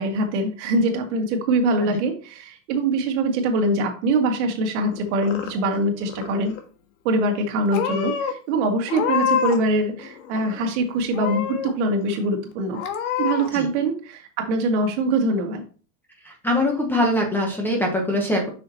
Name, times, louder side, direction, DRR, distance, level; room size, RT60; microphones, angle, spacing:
voice 1, 0.0-6.6 7.0-12.8 13.2-15.6, right 2 dB, 60° right, 3 dB, 1.9 m, -23 dB
Purr / Meow, 4.9-5.8 6.1-6.6 7.3-7.4 7.7-8.3 8.8-9.7 10.0-10.7 11.1-11.7 12.2-12.3 12.7-13.5, left 8 dB, 65° left, 1.4 m, -27 dB
voice 2, 16.2-18.5, left 1 dB, 5° left, 1 dB, 0.8 m, -23 dB
7.6 x 5.9 x 2.8 m, 0.36 s
supercardioid pair, 170°, 39 cm